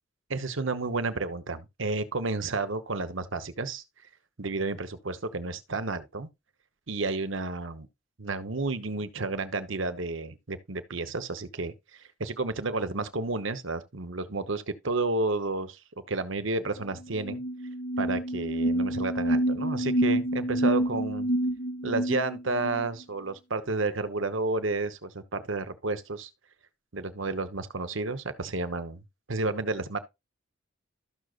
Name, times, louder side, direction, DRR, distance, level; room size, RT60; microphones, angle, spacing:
voice 1, 0.3-3.8 4.4-6.3 6.9-7.9 8.2-15.8 16.1-17.4 18.0-21.3 21.8-26.3 26.9-29.0 29.3-30.0, right 3 dB, 70° right, 1.1 m, -31 dB
sound 1, 16.8-16.9 17.1-22.9, right 1 dB, 60° left, 2.1 m, -28 dB
13.0 x 6.5 x 2.4 m
head